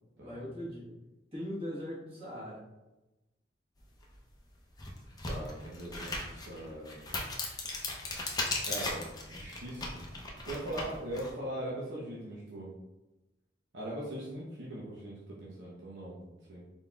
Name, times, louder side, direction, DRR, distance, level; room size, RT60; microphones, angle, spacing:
voice 1, 0.2-0.9 1.3-2.6, equal, 30° right, -7 dB, 1.4 m, -40 dB
sound 1, 4.0-4.1 4.7-11.3, left 2 dB, 20° left, 0.6 m, -37 dB
voice 2, 5.2-7.1 8.6-12.7 13.7-16.6, right 1 dB, 80° right, -6 dB, 0.8 m, -41 dB
4.1 x 3.9 x 2.4 m, 1.0 s
head